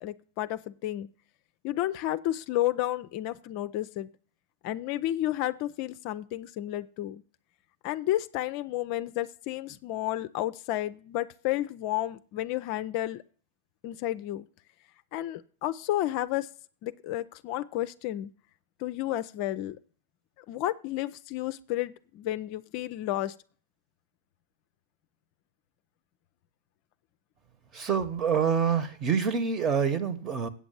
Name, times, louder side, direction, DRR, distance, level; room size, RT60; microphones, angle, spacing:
voice 1, 0.0-1.1 1.6-4.1 4.6-7.2 7.8-13.2 13.8-14.5 15.1-16.5 16.8-18.3 18.8-19.8 20.5-23.3, left 14 dB, 45° left, 12 dB, 0.5 m, -31 dB
voice 2, 27.7-30.5, right 6 dB, 25° right, 13 dB, 1.2 m, -26 dB
8.6 x 6.9 x 7.3 m, 0.43 s
figure-of-eight pair, 90°, 0 cm